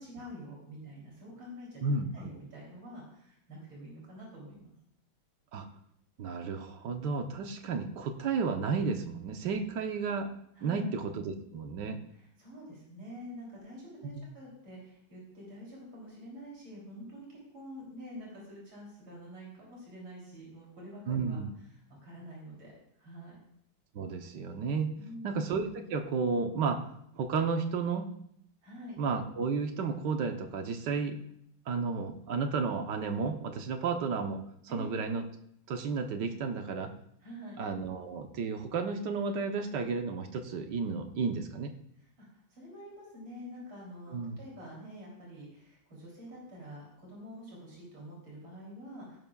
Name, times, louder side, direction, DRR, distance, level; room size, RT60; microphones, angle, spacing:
voice 1, 0.0-1.8 2.1-4.7 10.6-10.9 12.1-21.4 21.7-23.4 24.9-25.3 28.6-29.0 34.7-34.9 37.2-37.6 42.2-49.2, equal, 90° right, -4 dB, 4.1 m, -47 dB
voice 2, 1.8-2.3 5.5-5.7 6.2-10.3 10.6-12.0 14.2-14.3 21.1-21.5 23.9-25.0 25.2-26.8 27.1-28.1 29.0-31.2 31.7-34.4 34.7-35.2 35.7-36.9 37.6-41.7 44.1-44.4, right 5 dB, 65° right, 6 dB, 1.5 m, -32 dB
17.0 x 11.0 x 2.3 m, 0.71 s
omnidirectional pair, 2.1 m